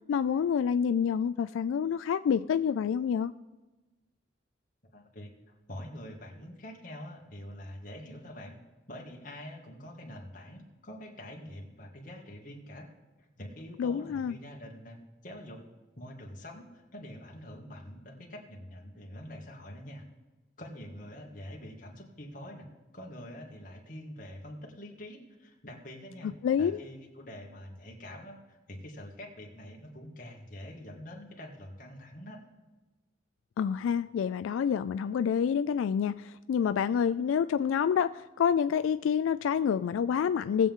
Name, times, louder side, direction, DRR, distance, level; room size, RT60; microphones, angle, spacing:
voice 1, 0.1-3.3 13.8-14.4 26.4-26.8 33.6-40.7, left 7 dB, 90° left, 13 dB, 0.3 m, -28 dB
voice 2, 4.9-5.3 5.7-8.6 8.9-12.9 13.2-15.6 16.0-20.1 20.6-22.7 22.9-32.4, left 1 dB, 45° left, 0 dB, 2.1 m, -45 dB
19.0 x 7.8 x 3.7 m, 1.2 s
head